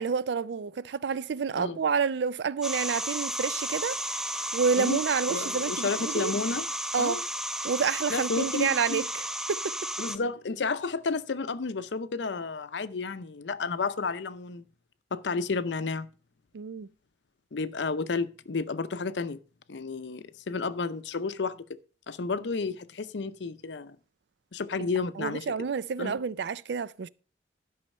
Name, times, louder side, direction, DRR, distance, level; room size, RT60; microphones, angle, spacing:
voice 1, 0.0-4.0 4.5-6.3 6.9-7.2 7.6-9.6 16.5-16.9 25.2-27.1, right 6 dB, 70° right, 0.4 m, -29 dB
sound 1, 2.6-10.2, right 1 dB, 5° right, 0.5 m, -33 dB
voice 2, 5.3-6.7 7.0-7.2 8.1-9.0 10.0-14.6 15.1-16.1 17.5-19.4 19.7-21.6 22.1-24.0 24.5-25.5 26.0-26.2, left 4 dB, 85° left, 0.6 m, -31 dB
12.0 x 5.6 x 5.4 m
head